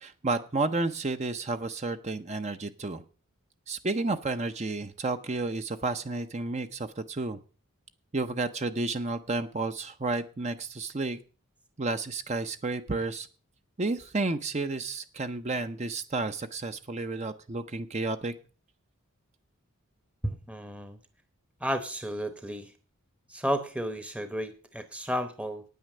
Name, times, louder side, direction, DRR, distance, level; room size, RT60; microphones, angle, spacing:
voice 1, 0.0-3.0 3.7-7.4 8.1-11.2 11.8-13.3 13.8-18.3, right 3 dB, 30° right, 9 dB, 0.7 m, -31 dB
voice 2, 20.2-21.0 21.6-22.7 23.3-25.6, equal, 5° right, 9 dB, 0.9 m, -32 dB
9.3 x 9.3 x 6.6 m, 0.37 s
head